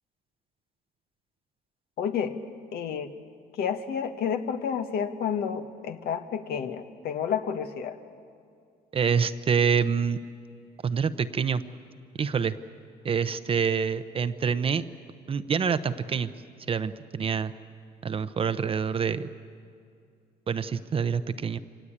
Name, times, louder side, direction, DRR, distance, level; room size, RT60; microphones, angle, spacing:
voice 1, 2.0-2.4 2.7-3.1 3.6-8.0, left 7 dB, 65° left, 7 dB, 1.5 m, -30 dB
voice 2, 8.9-10.2 10.8-11.6 12.2-12.5 13.0-14.8 15.3-16.3 16.7-17.5 18.0-19.3 20.5-21.6, right 6 dB, 35° right, 12 dB, 0.8 m, -26 dB
25.5 x 18.0 x 8.8 m, 2.4 s
cardioid pair, 110°, 17 cm